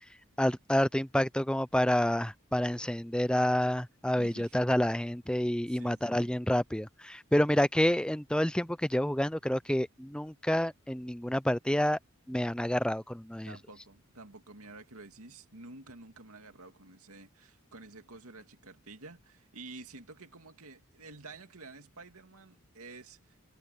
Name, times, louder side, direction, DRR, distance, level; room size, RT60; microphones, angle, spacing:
voice 1, 0.4-12.0 12.3-13.6, left 1 dB, 5° left, 0.5 m, -28 dB
voice 2, 4.2-4.6 5.6-6.4 13.5-23.4, right 3 dB, 90° right, 2.5 m, -50 dB
head